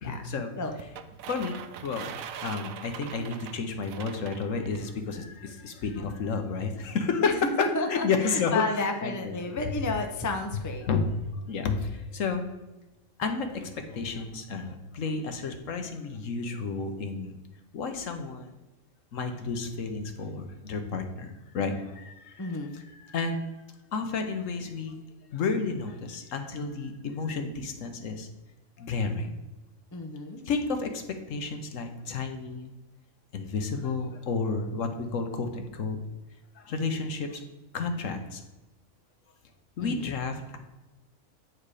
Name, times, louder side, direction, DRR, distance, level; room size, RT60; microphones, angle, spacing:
voice 1, 0.0-0.5 1.3-7.4 7.9-8.6 9.0-9.3 10.8-11.1 11.5-12.4 13.2-17.3 17.7-18.5 19.1-23.4 23.9-25.0 25.3-28.3 28.8-29.3 30.5-32.7 33.3-36.0 36.5-37.4 37.7-38.4 39.8-40.6, left 4 dB, 75° left, 6 dB, 1.3 m, -31 dB
sound 1, 0.8-4.9, right 8 dB, 90° right, 1.1 m, -42 dB
voice 2, 7.2-10.9 22.4-22.8 29.9-30.4 39.8-40.1, left 3 dB, 20° left, 4 dB, 0.6 m, -32 dB
8.7 x 4.8 x 4.8 m, 1.1 s
omnidirectional pair, 1.4 m